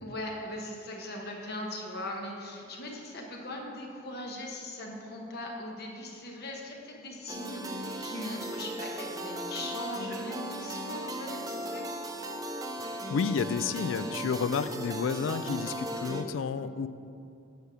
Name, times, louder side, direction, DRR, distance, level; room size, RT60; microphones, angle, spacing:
voice 1, 0.0-12.6, left 1 dB, 55° left, 0 dB, 1.0 m, -40 dB
sound 1, 7.3-16.2, right 1 dB, 20° right, 0.5 m, -37 dB
voice 2, 12.8-16.9, left 5 dB, 75° left, 14 dB, 0.3 m, -31 dB
8.2 x 6.2 x 5.0 m, 2.5 s
head